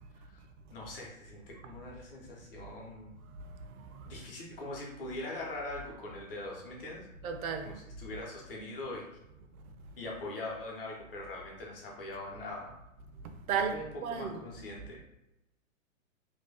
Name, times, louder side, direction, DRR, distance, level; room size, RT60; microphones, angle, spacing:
voice 1, 0.7-3.1 4.0-7.1 7.6-9.1 10.0-12.8 13.5-15.0, left 2 dB, 40° left, 0.8 m, -42 dB
voice 2, 7.2-7.7 13.5-14.4, right 6 dB, 90° right, 0.6 m, -33 dB
2.9 x 2.6 x 3.4 m
hypercardioid pair, 180°, 41 cm